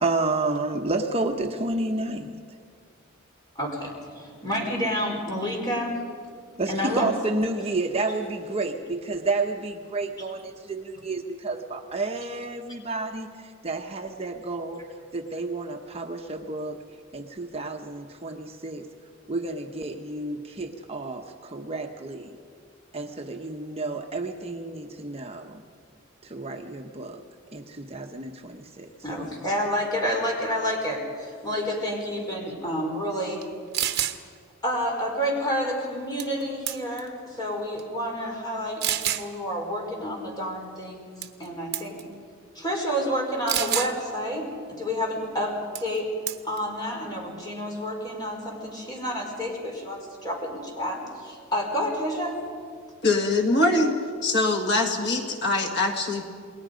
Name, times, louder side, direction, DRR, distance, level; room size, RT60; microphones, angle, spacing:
voice 1, 0.0-2.4 6.6-14.8 15.1-16.8 17.1-18.9 19.3-22.4 22.9-25.6 26.2-27.2 27.5-28.9, right 2 dB, 30° right, 4 dB, 1.0 m, -30 dB
voice 2, 3.5-6.0 6.7-7.1 29.0-33.4 34.6-42.0 42.5-46.1 46.4-52.3, equal, 20° left, -1 dB, 4.6 m, -29 dB
sound 1, 33.4-33.5 33.7-34.2 36.2-36.4 36.7-37.1 37.8-37.9 38.8-39.3 41.2-41.5 41.7-42.0 43.5-43.9 45.8-46.0 46.3-46.6, right 11 dB, 50° right, 1.1 m, -27 dB
voice 3, 53.0-54.0 54.2-56.2, left 2 dB, 55° left, 2 dB, 2.1 m, -23 dB
29.0 x 21.0 x 5.2 m, 2.1 s
head